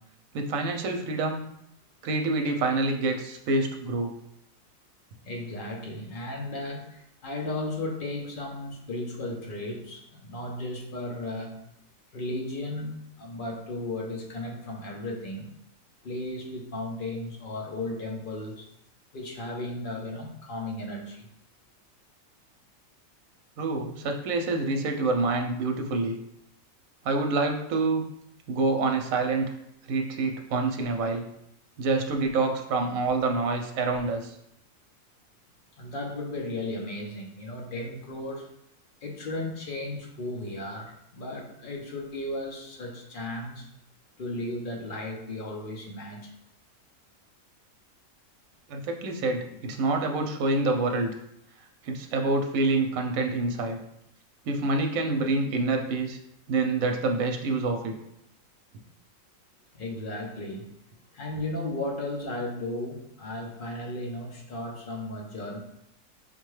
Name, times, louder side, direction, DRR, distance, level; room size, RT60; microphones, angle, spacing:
voice 1, 0.3-1.4 2.0-4.1 23.6-26.1 27.0-28.0 28.5-29.5 29.9-31.2 31.8-34.3 48.7-51.1 51.8-53.8 54.5-56.2 56.5-57.9, right 3 dB, 85° right, 4 dB, 1.0 m, -27 dB
voice 2, 5.2-11.5 12.1-15.5 16.0-18.7 19.1-21.3 35.7-38.5 39.0-43.7 44.2-46.3 49.5-49.6 59.7-60.7 61.1-65.6, left 1 dB, 50° left, 0 dB, 0.7 m, -35 dB
5.2 x 2.2 x 3.1 m, 0.76 s
omnidirectional pair, 1.4 m